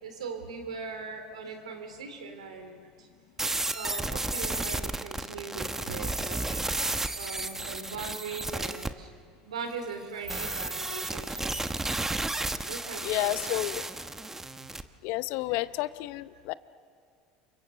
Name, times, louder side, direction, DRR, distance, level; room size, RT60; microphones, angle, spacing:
voice 1, 0.0-2.8 3.7-6.6 7.1-9.1 9.4-11.5 12.7-13.6, right 5 dB, 85° right, 6 dB, 3.6 m, -40 dB
sound 1, 3.4-8.9 10.3-14.8, right 2 dB, 10° right, 1.2 m, -32 dB
voice 2, 13.0-13.8 15.0-16.5, left 18 dB, 65° left, 15 dB, 0.8 m, -31 dB
28.5 x 24.5 x 7.0 m, 2.4 s
hypercardioid pair, 80°, 3 cm